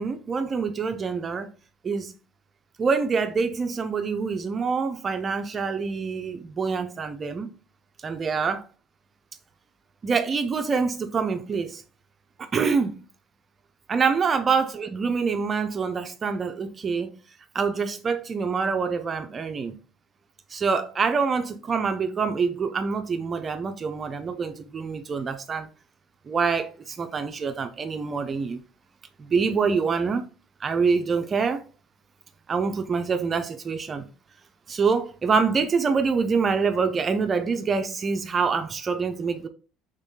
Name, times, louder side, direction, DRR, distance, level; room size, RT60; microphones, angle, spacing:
voice 1, 0.0-1.5 1.8-2.1 2.8-7.5 8.0-8.6 10.0-11.8 12.4-13.0 13.9-17.1 17.5-19.8 20.5-25.7 26.3-28.6 29.2-30.3 30.6-31.6 32.5-34.1 34.7-39.5, right 5 dB, 35° right, 0.4 m, -26 dB
3.5 x 3.4 x 2.7 m
supercardioid pair, 95°, 0 cm